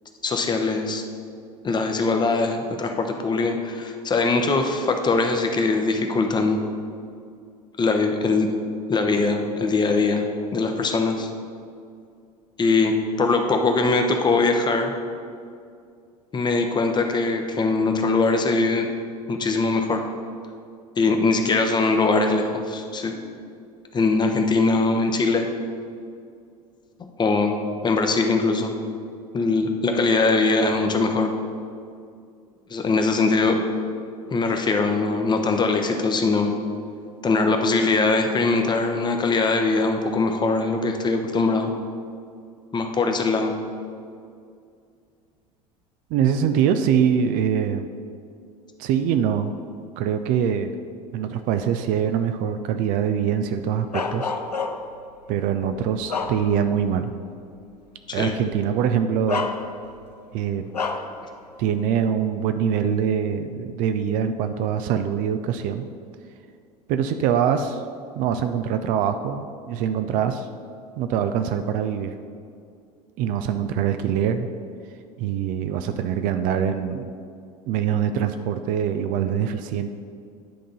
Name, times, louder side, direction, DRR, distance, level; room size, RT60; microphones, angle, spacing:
voice 1, 0.2-1.0 1.6-6.6 7.8-8.5 8.9-10.2 10.5-11.3 12.6-12.9 13.2-14.9 16.3-18.9 19.3-20.0 21.0-23.1 23.9-25.5 27.2-27.6 27.8-28.7 29.3-31.3 32.7-33.6 34.3-36.5 37.2-41.7 42.7-43.6 58.1-58.3, left 3 dB, 20° left, 4 dB, 0.8 m, -21 dB
voice 2, 46.1-47.8 48.8-49.5 50.0-50.7 51.1-54.3 55.3-57.1 58.1-59.5 60.3-60.7 61.6-65.8 66.9-67.8 68.2-70.5 71.0-72.1 73.2-74.5 75.2-77.1 77.7-79.9, right 8 dB, 45° right, 8 dB, 0.4 m, -23 dB
Bark, 53.9-55.0 55.6-56.8 57.3-57.4 58.6-58.7 59.3-60.1 60.7-61.2, left 4 dB, 90° left, 0.4 m, -29 dB
10.5 x 3.7 x 5.4 m, 2.3 s
figure-of-eight pair, 70°, 20 cm